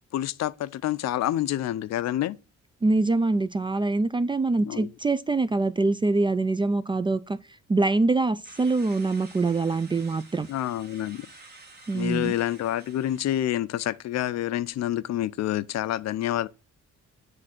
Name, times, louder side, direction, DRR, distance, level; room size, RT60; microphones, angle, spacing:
voice 1, 0.1-2.4 4.7-4.9 10.5-11.3 11.9-16.5, left 13 dB, 60° left, 0.5 m, -28 dB
voice 2, 2.8-7.4 7.7-10.5 11.9-12.3, right 3 dB, 15° right, 0.3 m, -24 dB
sound 1, 8.4-13.6, right 2 dB, 35° right, 1.6 m, -50 dB
7.5 x 3.3 x 6.0 m
cardioid pair, 90°, 30 cm